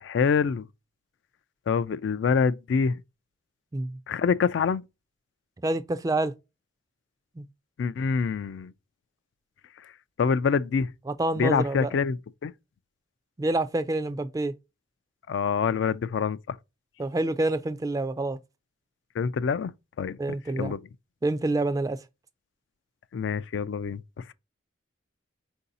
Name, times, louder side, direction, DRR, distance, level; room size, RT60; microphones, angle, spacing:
voice 1, 0.0-0.7 1.7-3.0 4.1-4.8 7.8-8.7 10.2-10.9 11.4-12.5 15.3-16.6 19.2-20.2 20.6-20.8 23.1-24.0, left 5 dB, 60° left, 0.3 m, -26 dB
voice 2, 5.6-6.3 7.4-7.5 11.1-11.9 13.4-14.5 17.0-18.4 20.2-20.7 21.2-22.0, right 2 dB, 15° right, 0.3 m, -27 dB
4.6 x 2.7 x 3.8 m
head